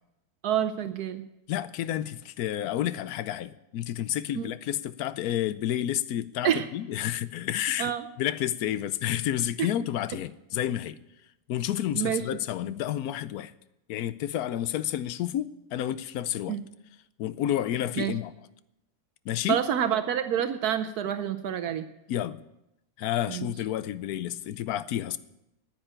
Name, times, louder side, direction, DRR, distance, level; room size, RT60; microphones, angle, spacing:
voice 1, 0.4-1.2 4.4-4.5 6.4-6.7 7.8-8.0 9.6-9.7 11.9-12.2 16.5-16.7 18.0-18.1 19.5-21.8 23.3-23.5, right 9 dB, 75° right, 1.2 m, -27 dB
voice 2, 1.5-7.9 8.2-11.0 11.5-13.5 13.9-16.6 17.2-18.3 19.2-19.6 22.1-22.4 23.0-25.2, left 12 dB, 75° left, 1.1 m, -30 dB
10.0 x 9.0 x 8.8 m
omnidirectional pair, 1.7 m